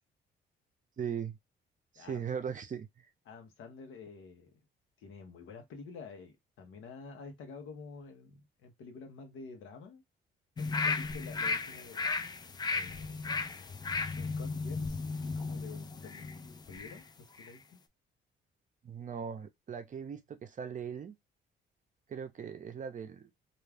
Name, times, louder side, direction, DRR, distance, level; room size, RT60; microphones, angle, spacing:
voice 1, 1.0-1.4 1.9-3.1 18.8-21.2 22.1-23.3, right 7 dB, 40° right, 0.6 m, -39 dB
voice 2, 2.0-2.3 3.3-4.6 5.0-10.0 10.6-12.3 12.7-13.2 14.1-17.8, left 4 dB, 80° left, 0.9 m, -49 dB
sound 1, 10.6-17.0 17.4-17.5, left 4 dB, 20° left, 0.3 m, -35 dB
2.4 x 2.3 x 3.3 m
cardioid pair, 90°, 20 cm